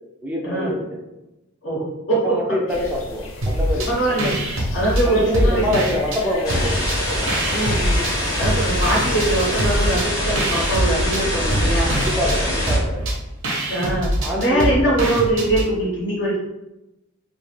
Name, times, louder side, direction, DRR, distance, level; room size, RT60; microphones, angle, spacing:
voice 1, 0.2-0.9 2.1-3.9 5.0-7.3 11.9-13.0 14.2-14.7, left 1 dB, 10° right, -3 dB, 0.4 m, -25 dB
voice 2, 1.6-2.3 2.8-2.9 3.9-4.4 4.7-5.8 7.5-8.0 8.4-11.9 13.7-16.4, right 1 dB, 60° left, -6 dB, 0.9 m, -22 dB
sound 1, 2.7-10.0, left 2 dB, 80° left, 0.5 m, -35 dB
sound 2, 3.4-3.9 4.2-6.2 6.5-8.1 8.4-15.7, right 1 dB, 70° right, 0.6 m, -24 dB
sound 3, 6.4-12.8, left 1 dB, 15° left, 0.7 m, -24 dB
2.4 x 2.3 x 3.1 m, 0.96 s
head